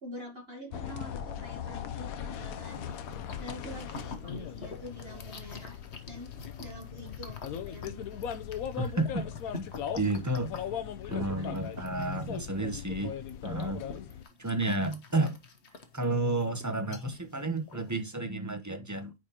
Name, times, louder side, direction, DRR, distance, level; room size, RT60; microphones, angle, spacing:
voice 1, 0.0-2.9 3.4-5.8 6.1-7.4 7.7-8.1 11.3-11.6, equal, 40° right, 1.5 m, -45 dB
sound 1, 0.7-14.2, left 9 dB, 70° left, 1.1 m, -39 dB
sound 2, 2.3-18.1, left 4 dB, 50° left, 1.2 m, -47 dB
voice 2, 8.8-9.3 9.5-9.6 10.0-10.5 11.1-13.1 13.4-13.9 14.4-15.4 15.9-19.1, right 2 dB, 15° right, 0.7 m, -31 dB
9.1 x 4.1 x 2.9 m
omnidirectional pair, 1.7 m